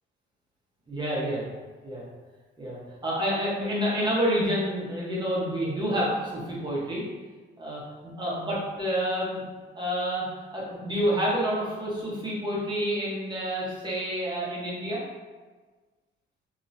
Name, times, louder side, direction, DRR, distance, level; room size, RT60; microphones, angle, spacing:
voice 1, 0.9-1.4 1.8-2.0 2.6-7.0 7.6-9.5 9.7-10.3 10.5-15.0, equal, 20° right, -6 dB, 1.2 m, -28 dB
3.0 x 2.8 x 2.7 m, 1.3 s
cardioid pair, 90°, 20 cm